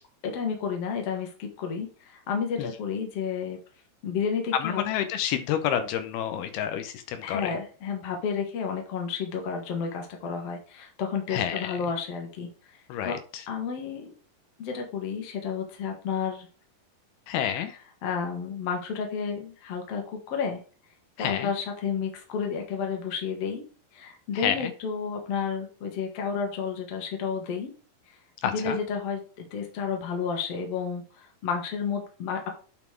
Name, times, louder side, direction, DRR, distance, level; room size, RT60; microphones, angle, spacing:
voice 1, 0.2-3.6 4.0-4.8 7.2-12.8 13.0-13.2 13.5-14.1 14.6-16.5 18.0-20.6 21.2-23.6 23.9-27.7 28.1-28.2 28.4-32.5, left 6 dB, 50° left, 2 dB, 2.2 m, -31 dB
voice 2, 4.5-7.6 11.3-11.8 12.9-13.4 17.3-17.8 21.2-21.5 24.3-24.7 28.4-28.8, left 10 dB, 80° left, 9 dB, 2.7 m, -29 dB
8.8 x 4.2 x 4.5 m, 0.38 s
omnidirectional pair, 4.4 m